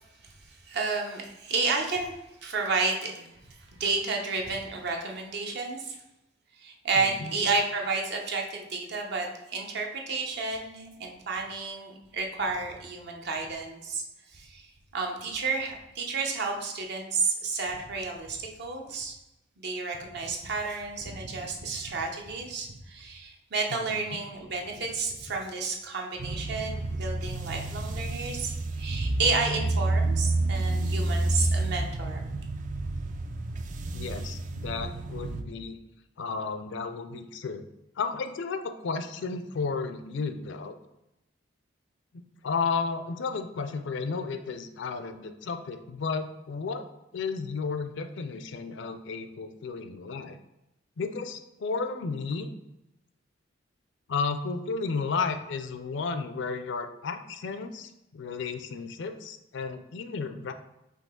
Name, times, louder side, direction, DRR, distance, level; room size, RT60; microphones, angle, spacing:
voice 1, 0.2-2.1 2.4-6.0 6.6-14.0 14.3-14.7 14.9-19.1 19.6-32.2, right 4 dB, 60° right, 1 dB, 0.8 m, -31 dB
voice 2, 7.0-7.3 23.7-24.2 33.9-35.8 36.2-37.6 38.0-40.8 42.1-46.8 47.1-50.4 51.0-52.5 54.1-60.5, left 4 dB, 65° left, 9 dB, 0.4 m, -33 dB
sound 1, 26.2-35.4, right 2 dB, 45° right, 0.4 m, -29 dB
5.1 x 2.8 x 3.7 m, 0.90 s
head